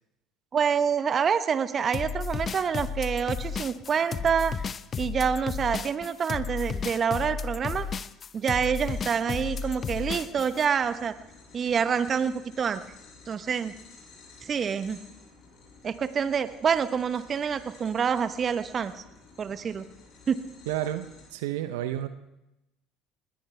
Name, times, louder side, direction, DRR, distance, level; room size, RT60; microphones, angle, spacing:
voice 1, 0.5-4.6 5.0-7.9 8.3-11.1 11.5-12.8 13.3-13.7 14.4-15.0 15.8-18.9 19.4-19.9 20.3-20.4, right 7 dB, 40° right, 12 dB, 1.1 m, -27 dB
sound 1, 1.9-10.7, left 6 dB, 40° left, 0.7 m, -33 dB
sound 2, 8.7-21.3, left 4 dB, 60° left, 7.8 m, -53 dB
voice 2, 20.7-22.1, right 12 dB, 80° right, 10 dB, 0.7 m, -31 dB
20.5 x 18.5 x 3.4 m, 0.90 s
hypercardioid pair, 65°, 0 cm